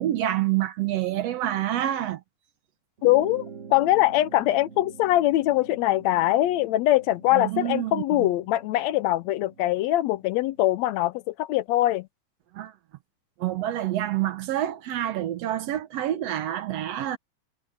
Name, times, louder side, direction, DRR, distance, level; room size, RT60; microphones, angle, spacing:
voice 1, 0.0-2.2 7.3-8.3 12.5-12.7 13.4-17.2, right 13 dB, 70° right, 1.9 m, -27 dB
voice 2, 3.0-3.4 3.7-12.1, left 15 dB, 75° left, 1.7 m, -22 dB
sound 1, 3.0-10.7, right 6 dB, 35° right, 1.2 m, -46 dB
omnidirectional pair, 3.3 m